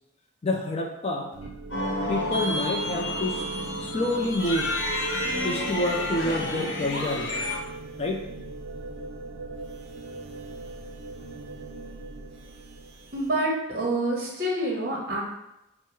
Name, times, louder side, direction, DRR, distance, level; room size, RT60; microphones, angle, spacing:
voice 1, 0.4-1.3 2.1-3.4 3.8-4.7 5.4-7.5 8.0-8.2, left 1 dB, 30° left, 1 dB, 0.4 m, -28 dB
sound 1, 1.3-13.3, right 3 dB, 65° right, 0.5 m, -39 dB
sound 2, 1.7-7.6, left 2 dB, 65° left, 0.8 m, -30 dB
voice 2, 13.1-15.2, right 1 dB, 50° right, -2 dB, 1.1 m, -27 dB
4.5 x 2.1 x 4.6 m, 0.88 s
head